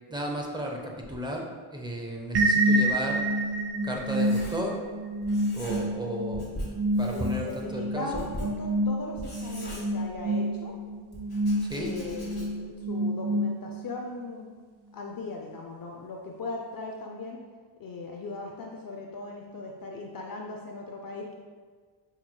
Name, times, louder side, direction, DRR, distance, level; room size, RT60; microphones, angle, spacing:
voice 1, 0.1-3.2 3.8-4.8 5.5-6.5 7.0-8.3 11.7-12.0, equal, 10° right, 0 dB, 0.6 m, -34 dB
sound 1, 2.3-14.0, right 1 dB, 55° right, 0.5 m, -28 dB
Writing, 3.1-4.9 5.2-6.1 6.3-10.5 11.1-12.7, left 1 dB, 20° left, 1.2 m, -42 dB
voice 2, 7.1-10.8 11.8-12.5 12.8-14.5 14.9-17.4 17.8-21.3, left 3 dB, 45° left, 0 dB, 0.5 m, -38 dB
5.4 x 3.0 x 2.2 m, 1.5 s
cardioid pair, 75°, 48 cm